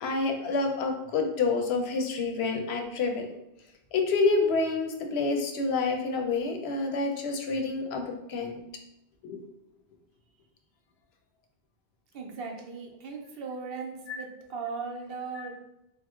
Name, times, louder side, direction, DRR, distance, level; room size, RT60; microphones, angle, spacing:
voice 1, 0.0-3.3 3.9-8.6 9.2-9.4 14.1-14.2 15.3-15.5, left 3 dB, 90° left, 3 dB, 0.8 m, -28 dB
voice 2, 12.1-15.5, right 5 dB, 70° right, 1 dB, 0.8 m, -38 dB
2.9 x 2.0 x 3.5 m, 0.86 s
omnidirectional pair, 1.0 m